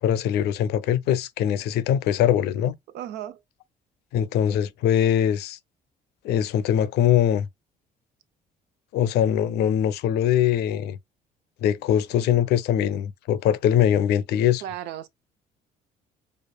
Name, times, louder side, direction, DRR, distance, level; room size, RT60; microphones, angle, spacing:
voice 1, 0.0-2.8 4.1-5.6 6.2-7.5 8.9-11.0 11.6-14.6, left 10 dB, 80° left, 0.5 m, -22 dB
voice 2, 2.9-3.4 14.6-15.1, right 11 dB, 85° right, 0.5 m, -34 dB
4.8 x 2.5 x 2.2 m
cardioid pair, 110°, 17 cm